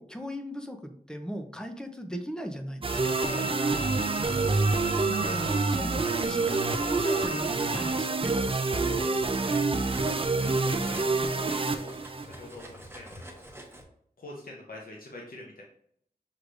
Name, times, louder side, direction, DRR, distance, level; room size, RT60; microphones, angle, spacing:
voice 1, 0.0-3.2 3.7-3.8 4.2-4.5 4.8-8.4, equal, 5° left, 4 dB, 0.7 m, -38 dB
sound 1, 2.8-12.5, right 3 dB, 35° right, 0.4 m, -27 dB
Bowed string instrument, 2.9-7.9, right 4 dB, 75° right, 1.1 m, -37 dB
Cutlery silverware, 4.3-5.6 6.5-6.7 7.1-10.4 10.7-13.8, right 1 dB, 15° right, 1.1 m, -47 dB
voice 2, 8.7-9.6 10.2-11.1 11.3-11.9 12.2-13.4 14.2-15.6, left 1 dB, 65° left, -2 dB, 0.9 m, -44 dB
6.4 x 3.2 x 2.5 m, 0.67 s
wide cardioid pair, 60°, 16 cm